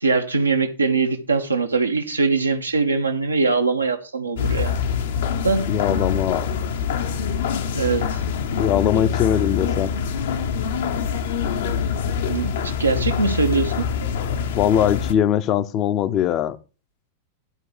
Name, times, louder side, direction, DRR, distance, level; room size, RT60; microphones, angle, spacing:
voice 1, 0.0-4.7 5.4-5.6 7.7-8.2 12.3-13.9, right 4 dB, 80° right, 1.3 m, -22 dB
sound 1, 4.4-15.1, left 7 dB, 60° left, 1.1 m, -25 dB
voice 2, 5.7-6.5 8.6-9.9 14.5-16.6, left 10 dB, 35° left, 0.8 m, -21 dB
11.0 x 4.7 x 6.7 m
figure-of-eight pair, 90°, 0 cm